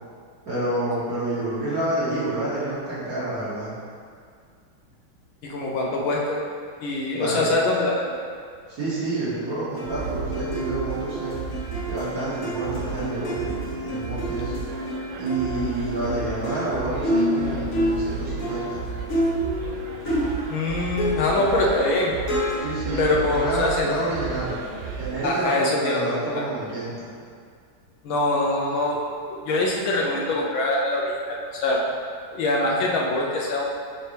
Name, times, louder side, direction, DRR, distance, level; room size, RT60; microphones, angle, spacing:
voice 1, 0.4-3.7 7.1-7.5 8.7-11.3 11.9-14.5 15.2-18.9 22.6-24.5 25.0-27.1, right 2 dB, 50° right, -10 dB, 2.2 m, -29 dB
voice 2, 5.4-6.4 6.8-8.2 20.5-22.1 23.0-23.9 25.2-26.4 28.0-29.0 29.3-31.8 32.3-33.6, left 2 dB, 80° left, -3 dB, 1.6 m, -24 dB
sound 1, 9.7-20.7 21.0-22.6, equal, 50° left, 1.2 m, -29 dB
sound 2, 9.8-25.3, right 5 dB, 80° right, 1.4 m, -34 dB
6.7 x 4.4 x 3.3 m, 2.1 s
omnidirectional pair, 2.2 m